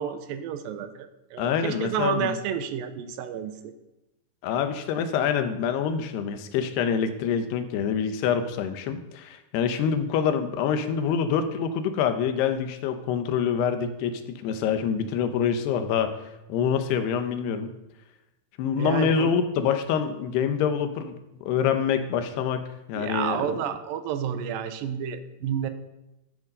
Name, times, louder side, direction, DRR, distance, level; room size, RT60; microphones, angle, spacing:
voice 1, 0.0-3.7 18.8-19.3 22.9-25.7, right 8 dB, 75° right, 9 dB, 2.5 m, -30 dB
voice 2, 1.4-2.4 4.4-16.1 16.5-17.7 18.6-23.5, left 7 dB, 90° left, 8 dB, 3.1 m, -26 dB
13.5 x 8.7 x 5.4 m, 0.96 s
omnidirectional pair, 4.6 m